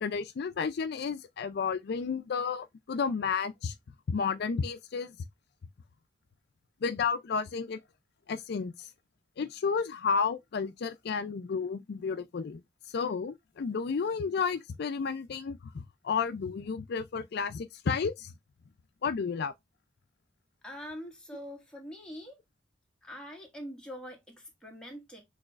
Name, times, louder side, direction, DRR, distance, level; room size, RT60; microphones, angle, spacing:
voice 1, 0.0-3.7 4.1-5.1 6.8-7.8 8.3-8.9 9.4-12.6 12.9-18.3 19.0-19.5, left 5 dB, 55° left, 0.4 m, -32 dB
voice 2, 20.6-22.4 23.0-25.2, equal, 5° left, 1.6 m, -44 dB
6.2 x 3.0 x 2.4 m
head